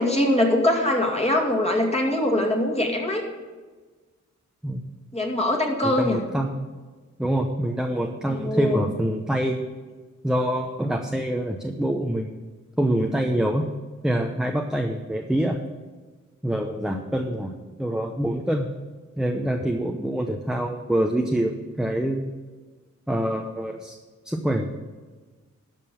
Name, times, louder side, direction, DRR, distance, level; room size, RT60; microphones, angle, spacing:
voice 1, 0.0-3.2 5.1-6.2 8.2-8.9, left 1 dB, 20° left, 0 dB, 2.3 m, -22 dB
voice 2, 5.8-6.7 7.2-9.6 10.2-12.3 12.8-13.7 14.0-15.6 16.4-18.7 19.2-22.3 23.1-24.0 24.2-24.7, right 1 dB, ahead, 3 dB, 0.7 m, -25 dB
12.5 x 5.4 x 7.1 m, 1.3 s
wide cardioid pair, 80°, 30 cm